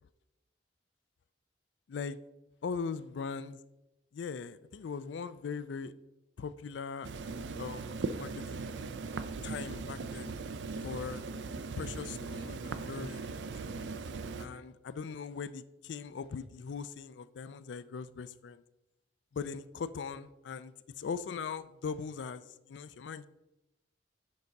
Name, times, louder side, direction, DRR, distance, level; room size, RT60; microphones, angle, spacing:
voice 1, 2.6-3.6 4.1-5.9 6.4-7.1 7.6-7.9 8.2-8.7 9.4-10.3 10.8-11.2 11.8-13.7 14.4-18.6 19.3-23.3, left 5 dB, 80° left, 0.4 m, -40 dB
sound 1, 7.0-14.5, right 4 dB, 80° right, 0.4 m, -39 dB
6.5 x 4.9 x 4.0 m
head